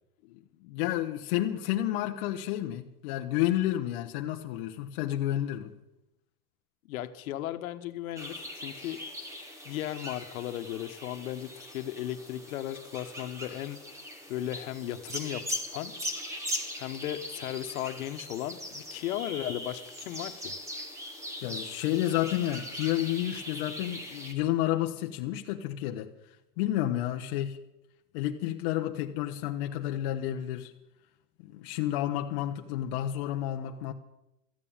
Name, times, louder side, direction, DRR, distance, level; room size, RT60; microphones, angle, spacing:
voice 1, 0.3-5.7 21.4-26.1 26.6-27.6 28.1-30.7 31.4-33.9, left 13 dB, 35° left, 0.7 m, -30 dB
voice 2, 6.9-9.0 9.6-13.8 14.3-15.5 15.7-15.9 16.8-20.6, left 13 dB, 60° left, 1.2 m, -36 dB
sound 1, 8.2-24.3, left 1 dB, 5° right, 0.8 m, -40 dB
13.5 x 9.1 x 8.7 m
supercardioid pair, 170°, 46 cm